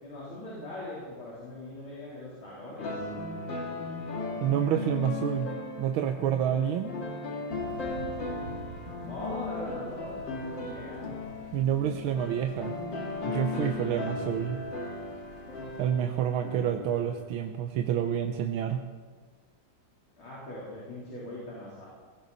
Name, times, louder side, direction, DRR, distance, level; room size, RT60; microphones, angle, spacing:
voice 1, 0.0-3.0 9.0-11.0 20.2-21.9, left 1 dB, 80° left, -7 dB, 4.5 m, -40 dB
sound 1, 2.8-17.3, left 3 dB, 65° left, 2.7 m, -37 dB
voice 2, 4.4-6.9 11.5-12.7 13.3-14.6 15.8-18.8, right 9 dB, 90° right, 5 dB, 1.6 m, -28 dB
Thunder / Rain, 7.5-15.9, right 1 dB, 55° right, 2.7 m, -48 dB
19.5 x 16.5 x 4.1 m, 1.5 s
omnidirectional pair, 2.2 m